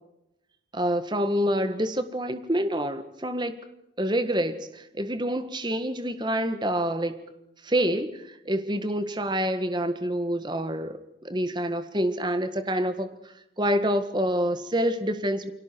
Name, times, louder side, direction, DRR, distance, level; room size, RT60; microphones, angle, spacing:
voice 1, 0.7-3.6 4.0-7.2 7.6-13.1 13.6-15.5, equal, 25° right, 10 dB, 1.6 m, -27 dB
29.5 x 22.5 x 4.6 m, 0.88 s
head